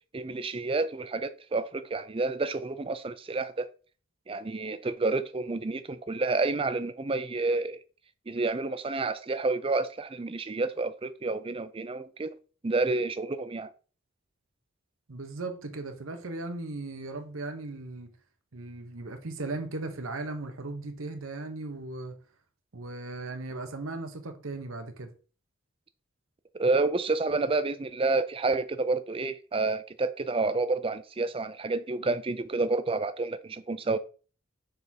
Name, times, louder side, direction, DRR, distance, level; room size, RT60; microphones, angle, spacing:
voice 1, 0.1-3.7 4.3-7.8 8.3-12.4 12.6-13.7 26.5-34.0, right 3 dB, 25° right, 0.4 m, -29 dB
voice 2, 15.1-18.1 18.5-22.2 22.7-25.1, right 2 dB, 85° right, 1.0 m, -37 dB
6.7 x 3.5 x 4.3 m
head